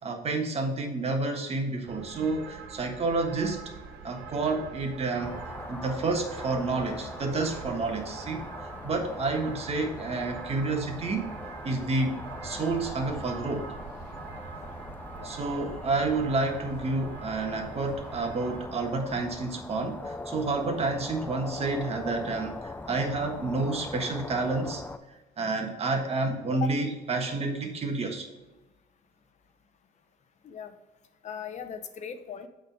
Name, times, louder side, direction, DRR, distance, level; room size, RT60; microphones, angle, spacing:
voice 1, 0.0-3.6 4.0-5.4 5.7-8.4 8.8-11.3 11.6-13.6 15.2-24.8 25.4-28.3, right 3 dB, 35° right, 3 dB, 1.4 m, -29 dB
city ambiance from cathedral tower, 1.8-18.7, right 5 dB, 70° right, 1.1 m, -44 dB
sound 1, 5.2-25.0, left 2 dB, 10° left, 0.4 m, -41 dB
voice 2, 30.4-30.7 31.2-32.5, left 8 dB, 45° left, 10 dB, 0.7 m, -38 dB
8.1 x 3.9 x 5.2 m, 1.1 s
cardioid pair, 110°, 17 cm